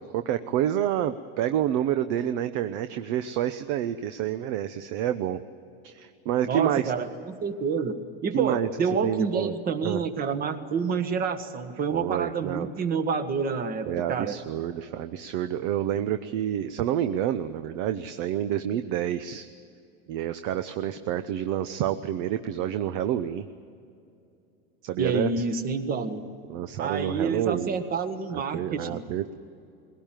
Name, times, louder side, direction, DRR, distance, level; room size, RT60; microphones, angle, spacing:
voice 1, 0.1-5.4 5.8-6.8 8.3-8.7 9.0-9.6 9.8-10.0 11.9-12.7 13.9-19.5 20.1-23.5 24.8-25.4 26.5-27.8 28.3-29.3, right 11 dB, 55° right, 10 dB, 0.9 m, -28 dB
voice 2, 6.4-14.4 25.0-26.2 26.8-29.0, right 5 dB, 30° right, 9 dB, 1.6 m, -28 dB
21.0 x 17.5 x 9.1 m, 2.6 s
supercardioid pair, 135°, 30 cm